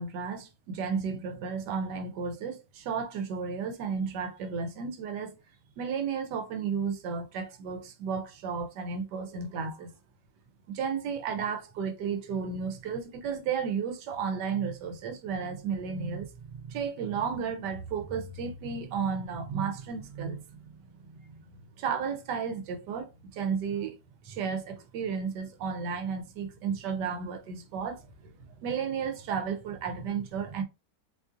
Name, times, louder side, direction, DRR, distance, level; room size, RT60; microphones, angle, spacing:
voice 1, 0.0-5.3 5.8-9.9 10.7-21.4 21.8-24.0 24.2-28.3 28.6-30.6, right 6 dB, 85° right, 1.3 m, -33 dB
4.2 x 2.5 x 2.4 m
omnidirectional pair, 1.8 m